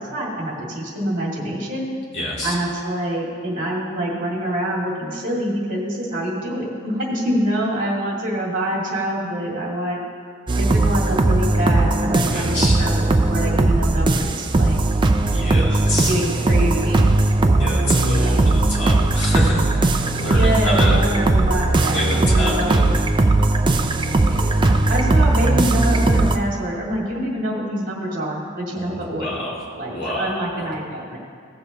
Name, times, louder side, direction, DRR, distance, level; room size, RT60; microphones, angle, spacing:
voice 1, 0.0-1.9 2.4-10.0 10.6-14.8 15.5-17.2 18.2-18.6 20.3-22.9 24.3-29.4 29.8-31.2, right 1 dB, 40° right, -3 dB, 2.2 m, -26 dB
voice 2, 2.1-2.5 12.3-12.8 15.3-16.2 17.6-21.0 21.8-22.8 28.7-29.6 29.9-30.7, left 1 dB, 55° left, -6 dB, 2.6 m, -27 dB
sound 1, 10.5-26.4, right 2 dB, 20° right, 0.4 m, -18 dB
16.5 x 7.1 x 2.9 m, 2.1 s
head